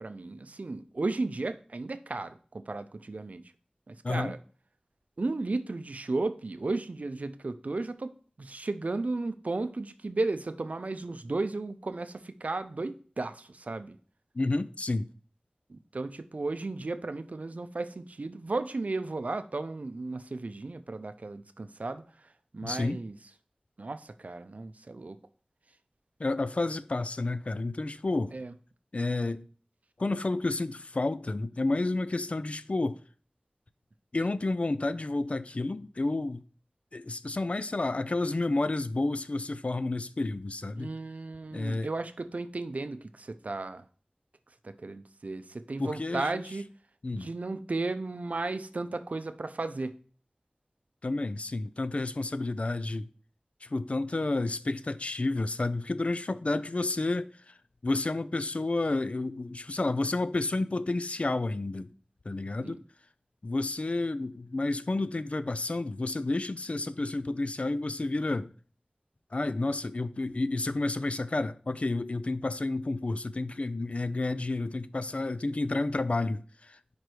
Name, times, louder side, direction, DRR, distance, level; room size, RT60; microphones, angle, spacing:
voice 1, 0.0-3.4 3.9-4.4 5.2-14.0 15.7-23.2 23.8-25.2 28.3-28.5 40.8-43.9 44.6-46.7 47.1-49.9 62.6-62.8, right 3 dB, 70° right, 0.5 m, -34 dB
voice 2, 4.0-4.3 14.3-15.1 22.6-23.0 26.2-28.4 28.9-29.5 30.0-33.0 34.1-36.4 36.9-40.9 41.5-41.9 45.8-46.4 47.0-47.3 51.0-53.1 53.6-57.5 57.8-61.9 62.3-62.8 63.4-68.5 69.3-77.0, left 2 dB, 55° left, 0.4 m, -30 dB
5.2 x 4.7 x 4.5 m
wide cardioid pair, 55°, 3 cm